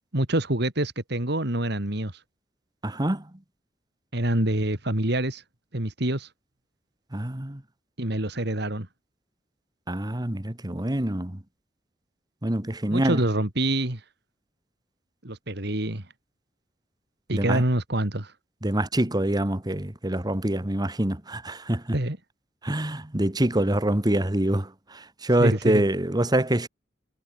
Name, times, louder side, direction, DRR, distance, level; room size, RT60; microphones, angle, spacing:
voice 1, 0.1-2.1 4.1-5.4 5.7-6.3 8.0-8.9 12.9-14.0 15.2-16.0 17.3-18.3 21.9-22.2 25.4-25.8, right 1 dB, 65° right, 3.3 m, -26 dB
voice 2, 2.8-3.2 7.1-7.6 9.9-11.4 12.4-13.2 17.3-17.6 18.6-22.0 22.6-26.7, right 1 dB, 20° right, 1.5 m, -25 dB
head